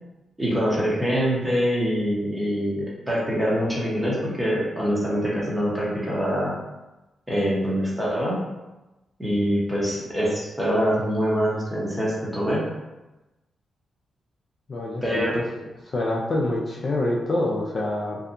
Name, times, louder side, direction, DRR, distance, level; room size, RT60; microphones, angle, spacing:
voice 1, 0.4-6.6 7.3-8.4 9.2-12.6 15.0-15.4, equal, 10° right, -6 dB, 0.8 m, -24 dB
voice 2, 14.7-15.4 15.9-18.2, left 1 dB, 40° left, -3 dB, 0.4 m, -26 dB
2.7 x 2.2 x 2.5 m, 1.0 s
cardioid pair, 115°, 0 cm